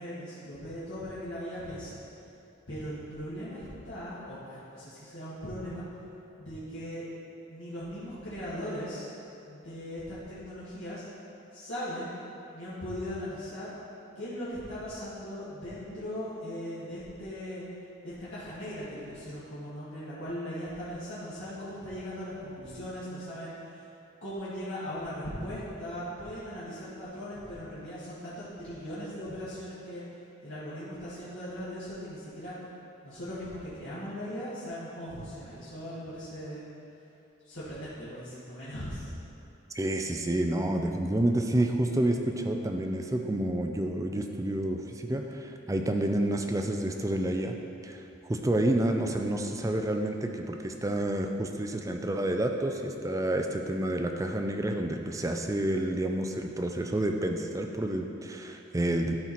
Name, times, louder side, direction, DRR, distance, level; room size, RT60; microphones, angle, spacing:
voice 1, 0.0-2.0 2.7-5.8 6.4-7.1 7.5-9.1 9.4-11.0 11.5-12.2 12.5-13.7 14.2-17.6 18.0-23.9 24.2-30.0 30.4-32.6 33.0-36.6 37.4-39.1, equal, 70° left, -12 dB, 1.9 m, -39 dB
voice 2, 39.7-47.6 47.8-59.2, right 1 dB, 15° right, 4 dB, 0.5 m, -29 dB
13.0 x 4.5 x 4.3 m, 2.8 s
head